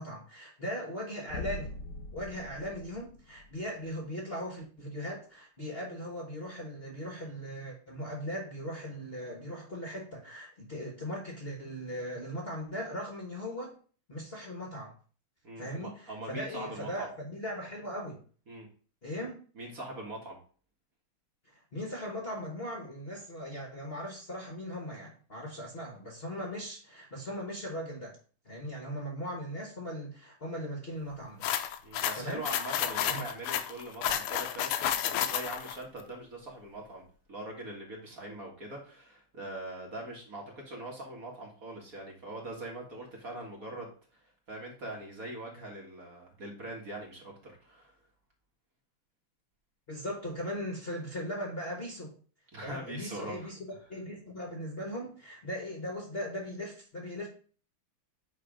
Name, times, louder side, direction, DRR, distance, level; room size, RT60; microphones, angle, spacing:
voice 1, 0.0-1.7 2.1-13.7 14.1-14.9 15.6-18.2 19.0-19.4 21.4-28.2 28.4-31.5 32.2-32.5 33.1-33.2 49.9-52.1 52.6-57.3, equal, 35° left, 0 dB, 1.2 m, -39 dB
sound 1, 1.3-3.9, left 3 dB, 60° left, 0.8 m, -42 dB
voice 2, 15.4-17.1 18.5-18.7 19.6-20.4 31.8-37.0 37.3-43.9 44.5-47.9 52.5-53.5, right 1 dB, 40° right, -1 dB, 2.0 m, -42 dB
sound 2, 31.4-35.8, left 10 dB, 85° left, 1.6 m, -31 dB
8.9 x 3.3 x 5.1 m, 0.41 s
omnidirectional pair, 2.4 m